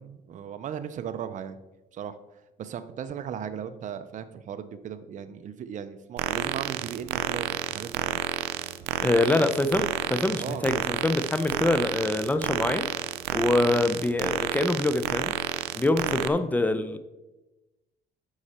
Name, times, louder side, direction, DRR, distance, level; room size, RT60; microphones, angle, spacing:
voice 1, 0.0-1.6 1.9-2.2 2.6-8.2 8.9-9.0 9.3-9.4 10.4-10.7 13.7-13.9, right 8 dB, 45° right, 10 dB, 0.7 m, -37 dB
sound 1, 6.2-16.3, right 12 dB, 90° right, 0.6 m, -30 dB
voice 2, 9.0-12.9 13.3-15.3 15.7-17.0, left 2 dB, 10° left, 10 dB, 0.7 m, -25 dB
9.6 x 6.4 x 4.3 m, 1.0 s
cardioid pair, 110°, 17 cm